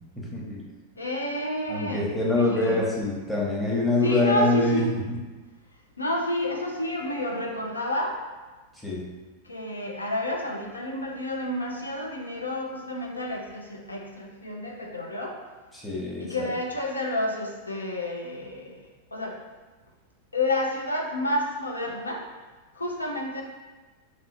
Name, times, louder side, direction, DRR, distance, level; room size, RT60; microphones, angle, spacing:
voice 1, 0.2-0.7 1.7-5.2 8.7-9.0 15.7-16.5, left 2 dB, 5° left, -5 dB, 0.9 m, -25 dB
voice 2, 1.0-2.8 4.0-4.9 6.0-8.2 9.4-15.4 16.2-19.4 20.3-22.2 22.7-23.4, left 1 dB, 80° left, 0 dB, 0.6 m, -30 dB
2.9 x 2.7 x 4.1 m, 1.2 s
figure-of-eight pair, 90°, 0 cm